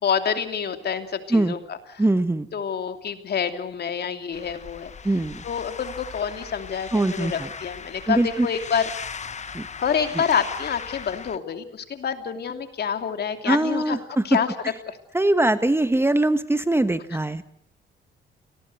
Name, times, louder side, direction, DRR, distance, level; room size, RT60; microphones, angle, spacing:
voice 1, 0.0-2.0 2.5-4.9 5.4-8.8 9.8-14.0 14.2-14.5 14.9-15.0, left 7 dB, 55° left, 8 dB, 2.9 m, -27 dB
voice 2, 2.0-2.5 5.0-5.4 6.9-7.5 8.1-8.5 9.5-9.7 10.1-10.2 13.4-14.2 15.1-17.4, right 2 dB, 10° right, 12 dB, 1.2 m, -22 dB
sound 1, 4.3-11.4, left 6 dB, 35° left, 1.2 m, -38 dB
29.5 x 19.5 x 8.1 m, 0.67 s
cardioid pair, 90°, 20 cm